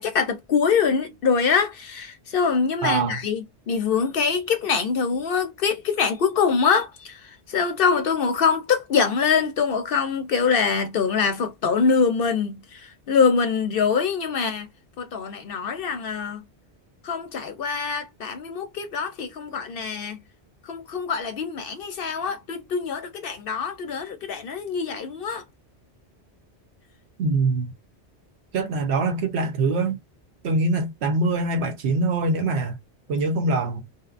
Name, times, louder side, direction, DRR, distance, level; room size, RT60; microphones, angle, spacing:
voice 1, 0.0-14.7 15.0-16.4 17.0-20.2 20.6-25.4, left 5 dB, 60° left, 0.7 m, -24 dB
voice 2, 2.8-3.2 27.2-27.7 28.5-30.0 30.4-32.8 33.1-33.8, right 3 dB, 75° right, 1.0 m, -23 dB
2.8 x 2.1 x 2.4 m
omnidirectional pair, 1.1 m